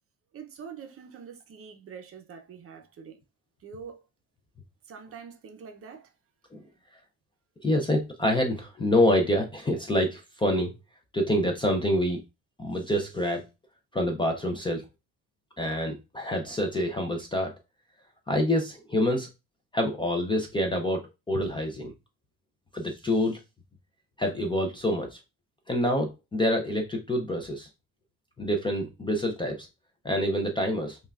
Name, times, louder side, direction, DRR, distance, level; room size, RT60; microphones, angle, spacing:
voice 1, 0.3-3.2 3.6-4.0 4.8-6.1, right 6 dB, 40° right, 0.6 m, -45 dB
voice 2, 7.6-10.7 11.1-12.2 12.6-13.5 13.9-14.8 15.6-17.5 18.3-19.3 19.7-21.9 22.7-23.4 24.2-25.2 25.7-27.7 28.4-29.7 30.0-31.0, left 1 dB, 15° left, 0.4 m, -26 dB
5.3 x 2.3 x 2.3 m
cardioid pair, 150°, 36 cm